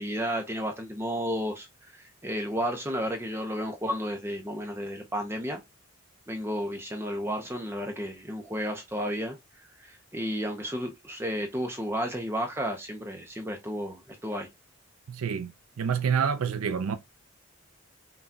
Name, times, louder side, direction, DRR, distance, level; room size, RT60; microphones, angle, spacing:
voice 1, 0.0-5.6 6.3-14.5, equal, 10° right, 0.5 m, -32 dB
voice 2, 15.1-15.5 15.8-17.0, right 7 dB, 85° right, 0.4 m, -27 dB
5.7 x 2.2 x 2.6 m
head